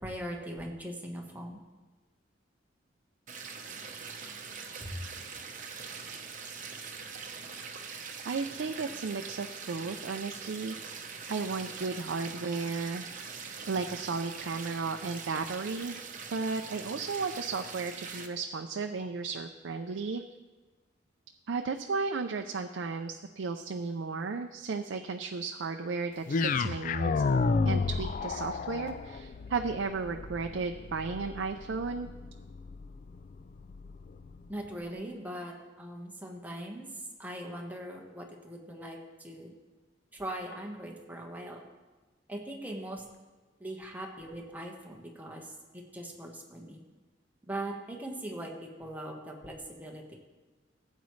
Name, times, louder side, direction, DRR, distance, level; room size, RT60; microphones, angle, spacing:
voice 1, 0.0-1.6 4.8-5.0 34.5-36.9 37.2-39.5 40.1-41.6 42.3-43.0 43.6-45.4 45.7-46.8 47.5-50.1, right 1 dB, 10° right, 0 dB, 1.3 m, -40 dB
sound 1, 3.3-18.3, right 5 dB, 45° right, 1.0 m, -43 dB
voice 2, 8.3-10.8 11.3-13.1 13.7-15.9 16.3-20.2 21.5-27.2 27.7-32.1, right 4 dB, 80° right, 5 dB, 0.5 m, -34 dB
sound 2, 26.3-34.5, left 4 dB, 45° left, 0.4 m, -32 dB
15.5 x 8.2 x 3.2 m, 1.3 s
head